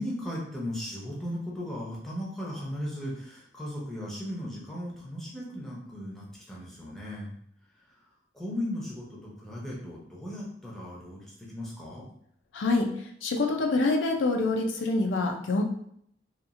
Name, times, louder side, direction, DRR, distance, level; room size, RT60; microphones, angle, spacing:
voice 1, 0.0-7.3 8.3-12.0, left 1 dB, ahead, -5 dB, 0.6 m, -36 dB
voice 2, 12.5-15.6, left 3 dB, 90° left, 2 dB, 0.4 m, -26 dB
2.9 x 2.4 x 2.5 m, 0.67 s
head